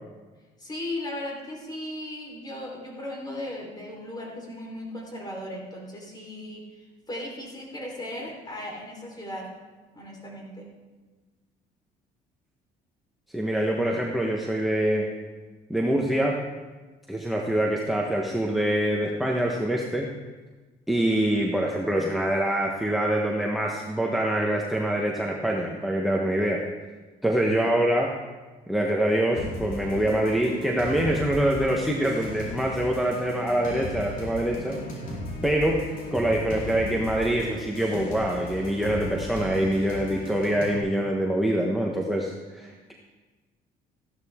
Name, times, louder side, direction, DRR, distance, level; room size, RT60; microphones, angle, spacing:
voice 1, 0.6-9.6 9.9-10.7 42.6-42.7, left 1 dB, 25° left, -1 dB, 4.0 m, -37 dB
voice 2, 13.3-15.1 15.7-16.4 17.1-20.1 20.9-26.6 27.2-28.1 28.7-34.8 35.4-35.8 36.1-42.9, right 1 dB, ahead, -1 dB, 1.1 m, -25 dB
sound 1, 29.4-40.8, left 2 dB, 55° left, 4.0 m, -36 dB
15.0 x 11.5 x 3.7 m, 1.3 s
cardioid pair, 110°, 17 cm